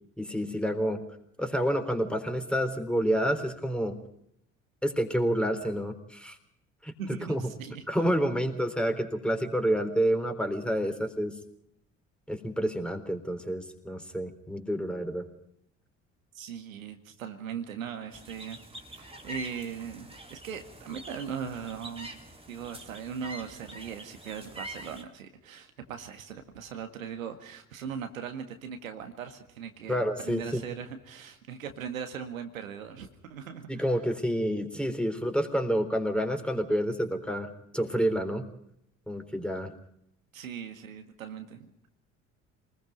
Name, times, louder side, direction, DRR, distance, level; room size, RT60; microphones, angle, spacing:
voice 1, 0.2-1.0 1.4-4.0 4.8-6.4 6.8-6.9 7.3-7.4 7.9-11.3 12.3-15.3 29.9-30.6 33.7-38.5 39.1-39.7, equal, ahead, 7 dB, 3.8 m, -29 dB
voice 2, 7.0-8.4 16.3-18.6 18.9-22.2 22.5-33.9 40.3-41.7, right 7 dB, 80° right, 7 dB, 1.9 m, -39 dB
sound 1, 18.1-25.0, right 1 dB, 15° right, 3.9 m, -45 dB
28.0 x 20.0 x 5.3 m, 0.72 s
figure-of-eight pair, 55°, 40 cm